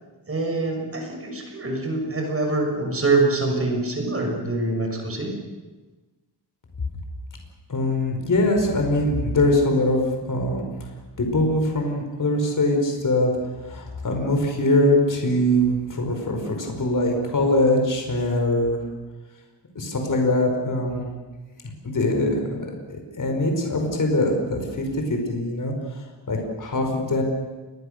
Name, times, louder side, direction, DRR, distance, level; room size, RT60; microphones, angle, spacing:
voice 1, 0.3-5.4, right 3 dB, 30° right, 2 dB, 6.4 m, -24 dB
voice 2, 7.7-10.0 10.3-10.6 11.2-13.3 13.6-18.8 19.8-21.1 21.8-22.7 23.2-27.2, left 1 dB, 45° left, 3 dB, 5.3 m, -22 dB
28.5 x 23.0 x 6.8 m, 1.2 s
wide cardioid pair, 130°, 43 cm